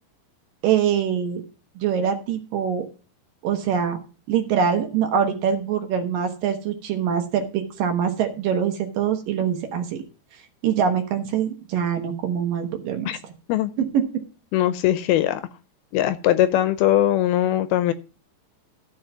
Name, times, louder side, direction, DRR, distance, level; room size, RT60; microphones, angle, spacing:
voice 1, 0.6-1.4 1.8-2.9 3.4-4.0 4.3-10.0 10.6-13.1 13.8-14.1, right 8 dB, 65° right, 5 dB, 2.6 m, -24 dB
voice 2, 14.5-15.4 15.9-17.9, left 12 dB, 80° left, 12 dB, 2.4 m, -20 dB
14.0 x 5.6 x 5.7 m, 0.36 s
omnidirectional pair, 4.7 m